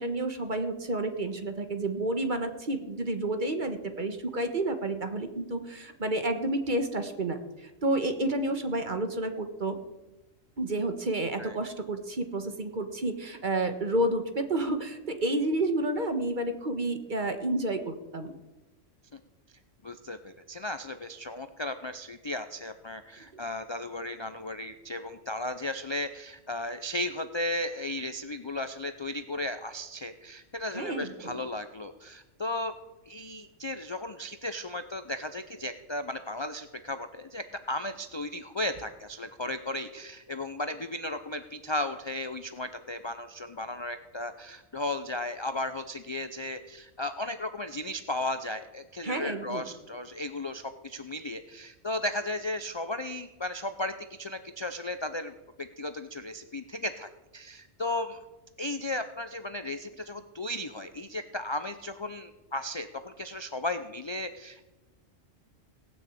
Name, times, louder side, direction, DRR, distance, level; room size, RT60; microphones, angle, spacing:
voice 1, 0.0-9.8 10.6-18.3 30.7-31.4 49.0-49.6, right 1 dB, 40° right, 8 dB, 1.5 m, -30 dB
voice 2, 19.8-32.7 33.1-58.2 58.6-64.7, left 1 dB, 35° left, 9 dB, 0.5 m, -35 dB
18.5 x 6.5 x 8.5 m, 1.1 s
omnidirectional pair, 1.3 m